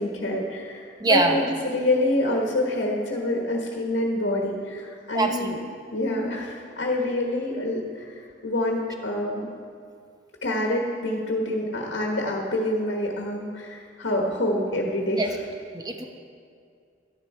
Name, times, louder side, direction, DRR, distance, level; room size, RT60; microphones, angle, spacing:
voice 1, 0.0-1.5 1.7-5.6 5.9-8.1 8.4-9.4 10.4-15.3, left 1 dB, 85° left, 0 dB, 1.4 m, -26 dB
voice 2, 1.0-1.4 5.1-5.6 15.2-15.3 15.7-16.0, right 2 dB, 20° right, 4 dB, 0.9 m, -23 dB
12.0 x 10.5 x 4.3 m, 2.3 s
head